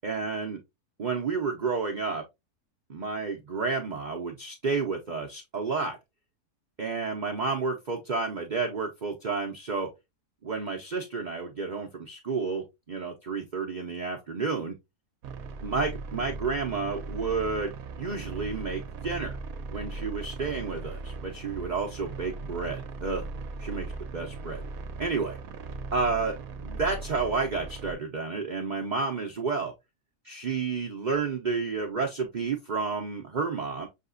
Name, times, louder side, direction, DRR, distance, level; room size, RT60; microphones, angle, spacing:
voice 1, 0.0-0.6 1.0-2.2 2.9-6.0 6.8-9.9 10.4-14.7 15.6-19.4 19.7-23.3 23.6-24.6 25.0-25.4 25.9-29.7 30.2-33.9, right 4 dB, 40° right, 0.6 m, -31 dB
sound 1, 15.2-27.9, right 3 dB, 70° right, 1.1 m, -38 dB
6.4 x 2.9 x 2.6 m
omnidirectional pair, 1.7 m